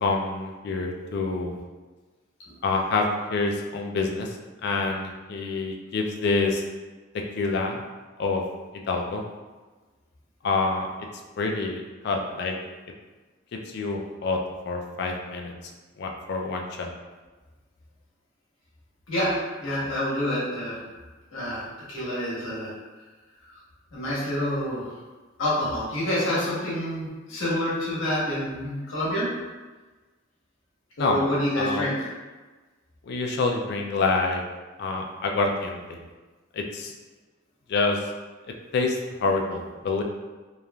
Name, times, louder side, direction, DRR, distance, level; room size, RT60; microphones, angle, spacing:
voice 1, 0.0-1.6 2.6-4.3 4.6-6.6 7.3-7.8 8.2-8.4 8.9-9.2 10.4-10.9 11.4-12.5 13.5-14.4 14.6-15.5 16.0-16.9 31.0-31.2 31.5-31.9 33.0-34.4 34.8-36.0 36.5-36.9 37.7-38.0 38.7-40.0, left 3 dB, 55° left, 2 dB, 0.3 m, -27 dB
voice 2, 19.1-20.8 21.3-22.7 23.9-25.0 25.4-29.3 31.0-32.1, left 1 dB, 85° left, -7 dB, 1.0 m, -27 dB
3.0 x 2.4 x 2.2 m, 1.3 s
head